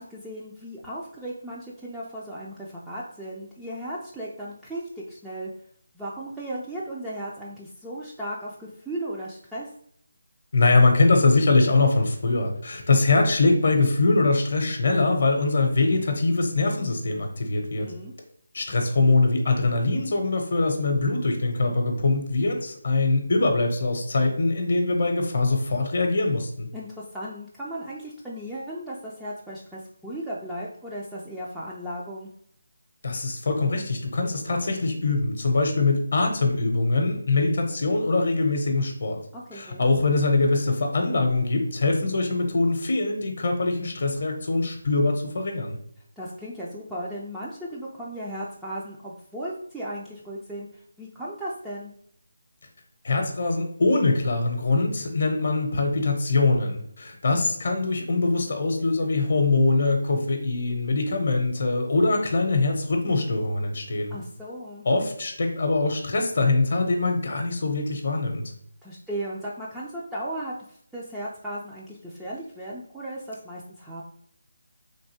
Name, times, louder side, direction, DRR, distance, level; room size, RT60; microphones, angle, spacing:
voice 1, 0.0-5.5 5.9-9.7 17.8-18.1 26.7-32.3 39.3-39.9 46.2-51.9 64.1-64.8 68.8-74.0, right 1 dB, 5° right, -7 dB, 0.4 m, -36 dB
voice 2, 10.5-17.9 18.5-26.7 33.0-39.2 39.5-45.8 53.0-64.2 64.8-68.4, left 3 dB, 55° left, 3 dB, 0.7 m, -23 dB
3.2 x 2.6 x 2.8 m, 0.67 s
figure-of-eight pair, 160°, 0 cm